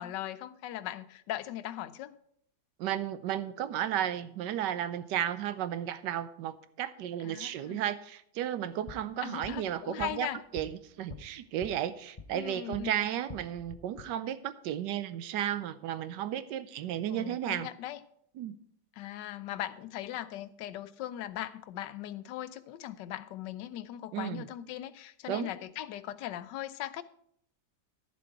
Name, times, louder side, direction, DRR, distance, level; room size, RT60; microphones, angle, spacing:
voice 1, 0.0-2.2 7.2-7.8 9.2-10.4 12.3-12.9 17.1-18.0 19.0-27.0, left 12 dB, 85° left, 14 dB, 1.3 m, -39 dB
voice 2, 2.8-10.3 10.5-17.7 18.4-18.5 24.1-24.4 25.3-25.5, right 11 dB, 90° right, 13 dB, 1.3 m, -33 dB
sound 1, 8.6-12.9 13.2-14.0, left 4 dB, 50° left, 0.4 m, -48 dB
11.0 x 7.1 x 4.6 m, 0.68 s
omnidirectional pair, 1.8 m